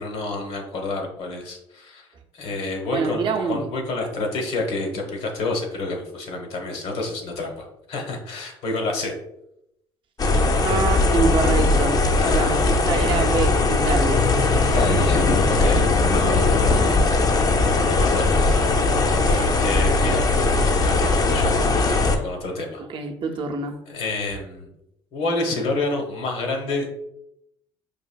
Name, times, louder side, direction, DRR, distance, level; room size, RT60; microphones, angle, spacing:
voice 1, 0.0-2.1 2.3-9.2 12.1-12.7 14.5-17.0 17.9-18.6 19.1-20.3 20.8-21.5 22.1-22.8 23.9-24.7 25.1-26.9, left 2 dB, 65° left, 2 dB, 1.0 m, -29 dB
voice 2, 2.9-3.7 10.6-12.0 12.3-14.3 19.3-19.6 22.9-23.8, right 4 dB, 50° right, 3 dB, 0.6 m, -26 dB
sound 1, 10.2-22.2, left 3 dB, 35° left, 0.5 m, -19 dB
4.8 x 2.6 x 2.3 m, 0.82 s
supercardioid pair, 70°, 11 cm